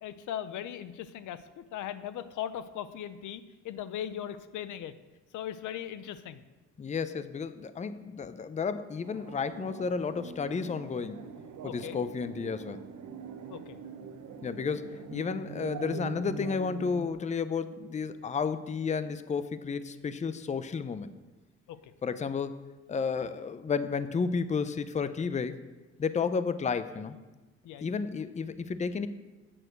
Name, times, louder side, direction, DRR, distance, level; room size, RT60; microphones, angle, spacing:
voice 1, 0.0-4.9 5.3-6.4 11.6-12.0 13.5-13.8 21.7-21.9 27.6-28.0, left 10 dB, 80° left, 13 dB, 0.6 m, -39 dB
voice 2, 6.8-11.3 11.6-12.8 14.4-21.1 22.0-22.5 22.9-25.6 26.0-27.2 27.8-29.1, left 5 dB, 25° left, 13 dB, 0.5 m, -32 dB
sound 1, 9.0-17.1, right 4 dB, 70° right, 1.0 m, -43 dB
8.8 x 6.3 x 6.6 m, 1.2 s
cardioid pair, 90°, 30 cm